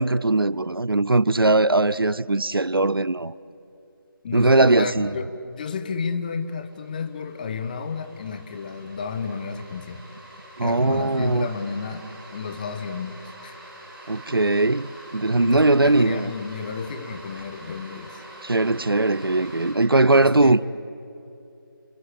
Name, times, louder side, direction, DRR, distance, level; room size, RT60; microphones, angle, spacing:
voice 1, 0.0-3.3 4.3-5.1 10.6-11.5 14.1-16.3 18.4-20.6, right 2 dB, 80° right, 0.7 m, -20 dB
voice 2, 4.2-10.0 10.6-13.6 15.4-18.2 20.2-20.6, left 5 dB, 20° left, 1.0 m, -32 dB
sound 1, 5.6-5.7 6.0-19.7, right 1 dB, 5° right, 6.5 m, -45 dB
29.5 x 22.5 x 8.5 m
figure-of-eight pair, 155°, 12 cm